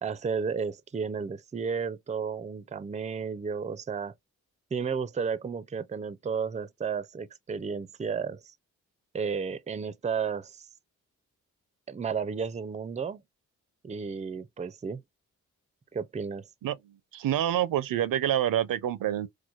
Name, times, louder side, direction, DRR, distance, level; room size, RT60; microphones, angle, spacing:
voice 1, 0.0-4.1 4.7-8.4 9.1-10.7 11.9-13.2 13.8-15.0 15.9-16.5, right 6 dB, 20° right, 0.5 m, -33 dB
voice 2, 17.1-19.3, right 11 dB, 80° right, 0.6 m, -27 dB
4.5 x 2.1 x 2.4 m
cardioid pair, 60°, 33 cm